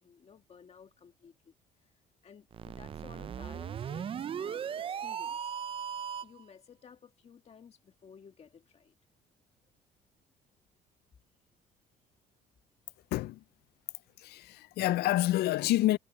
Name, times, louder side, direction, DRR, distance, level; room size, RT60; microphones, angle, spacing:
voice 1, 0.0-1.5 1.8-1.9 2.2-5.5 6.2-8.9, left 6 dB, 40° left, 1.9 m, -55 dB
sound 1, 2.5-6.4, right 8 dB, 35° right, 0.4 m, -37 dB
voice 2, 13.1-13.4 14.2-16.0, left 15 dB, 70° left, 0.5 m, -28 dB
cardioid pair, 110°, 17 cm